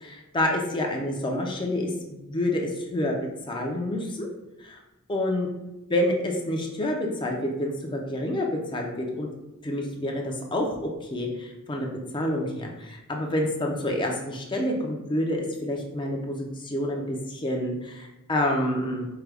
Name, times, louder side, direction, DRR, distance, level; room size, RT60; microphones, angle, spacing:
voice 1, 0.0-3.1 3.5-4.3 4.6-4.8 5.1-5.5 5.9-9.3 9.6-11.9 12.1-19.1, left 1 dB, 20° left, 1 dB, 0.5 m, -28 dB
4.7 x 2.2 x 3.3 m, 1.0 s
head